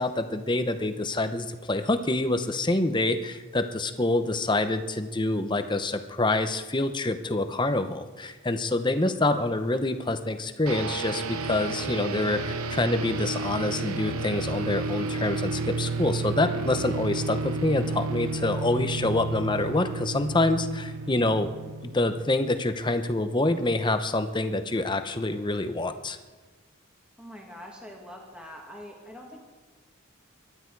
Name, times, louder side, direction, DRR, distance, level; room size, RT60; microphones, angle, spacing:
voice 1, 0.0-21.5 21.8-26.2, left 2 dB, 20° left, 9 dB, 0.8 m, -26 dB
sound 1, 10.7-22.9, right 3 dB, 80° right, 0.9 m, -32 dB
voice 2, 27.2-29.4, equal, 5° right, -1 dB, 2.0 m, -44 dB
23.5 x 12.0 x 4.7 m, 1.3 s
head